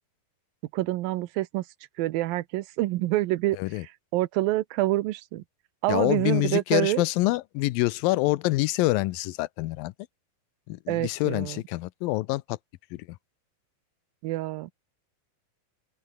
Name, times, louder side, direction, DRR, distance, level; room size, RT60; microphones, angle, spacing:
voice 1, 0.7-1.6 2.0-3.6 4.1-5.4 5.8-7.0 10.9-11.6 14.2-14.7, right 17 dB, 80° right, 2.6 m, -27 dB
voice 2, 3.5-3.9 5.9-9.9 10.7-12.6 12.9-13.1, left 19 dB, 85° left, 2.4 m, -26 dB
open air
omnidirectional pair, 4.1 m